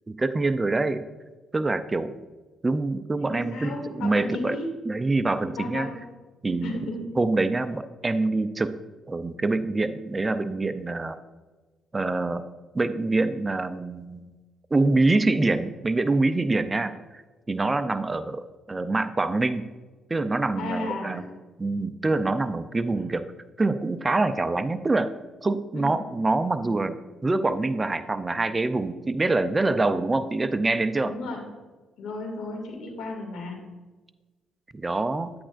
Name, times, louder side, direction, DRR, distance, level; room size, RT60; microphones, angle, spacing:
voice 1, 0.1-1.1 1.5-2.2 2.6-3.7 4.0-4.6 4.9-5.9 6.4-6.7 7.2-8.7 9.1-11.2 11.9-12.4 12.7-14.3 14.7-17.2 17.5-19.7 20.1-21.2 21.6-23.3 23.6-25.1 25.4-27.0 27.2-31.1 34.7-35.3, right 2 dB, 20° right, 11 dB, 0.4 m, -25 dB
voice 2, 3.2-4.7 5.6-6.0 6.4-7.1 20.6-21.3 23.0-23.1 25.7-26.0 31.0-31.4 32.0-33.6, left 2 dB, 80° left, 1 dB, 2.3 m, -34 dB
9.8 x 8.6 x 2.5 m, 1.3 s
cardioid pair, 90°, 0 cm